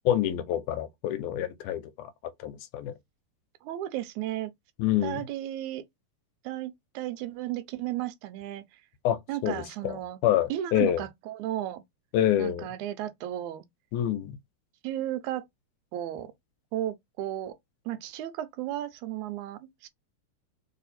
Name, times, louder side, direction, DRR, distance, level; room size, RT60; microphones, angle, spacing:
voice 1, 0.1-2.1 2.4-3.0 4.8-5.2 9.0-11.0 12.1-12.7 13.9-14.3, left 11 dB, 85° left, 2.1 m, -27 dB
voice 2, 3.6-4.5 5.0-5.8 6.4-8.6 9.3-10.2 10.5-11.8 12.4-13.6 14.8-15.5 15.9-16.3 16.7-17.6 17.9-19.9, right 13 dB, 80° right, 2.0 m, -34 dB
4.8 x 2.7 x 4.1 m
omnidirectional pair, 3.5 m